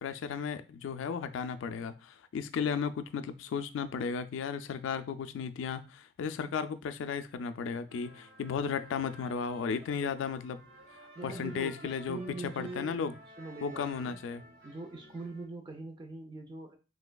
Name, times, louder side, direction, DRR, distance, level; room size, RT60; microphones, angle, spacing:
voice 1, 0.0-10.6 11.2-13.1 13.6-14.4, left 6 dB, 65° left, 0.3 m, -35 dB
sound 1, 7.9-15.5, equal, 70° right, 1.0 m, -54 dB
voice 2, 11.2-14.2 14.6-16.8, right 3 dB, 25° right, 0.3 m, -43 dB
3.2 x 2.9 x 2.2 m
head